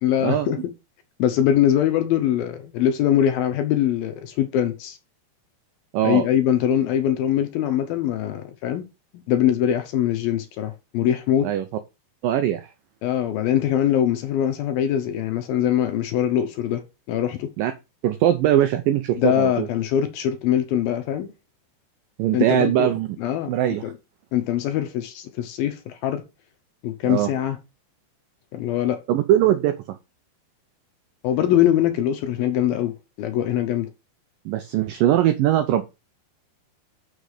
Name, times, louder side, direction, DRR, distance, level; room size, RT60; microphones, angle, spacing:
voice 1, 0.0-0.6 1.2-5.0 6.0-8.9 9.3-11.5 13.0-16.8 17.1-17.5 19.2-21.3 22.3-22.9 23.2-23.5 23.8-23.9 24.3-26.2 26.8-27.6 28.5-29.0 31.2-33.9, left 11 dB, 75° left, 2.3 m, -22 dB
voice 2, 5.9-6.3 11.4-11.7 12.2-12.7 17.6-17.7 18.0-19.7 22.2-23.1 23.5-23.8 27.0-27.3 29.1-29.7 34.5-35.8, right 12 dB, 85° right, 1.9 m, -21 dB
6.6 x 6.4 x 4.9 m
omnidirectional pair, 4.8 m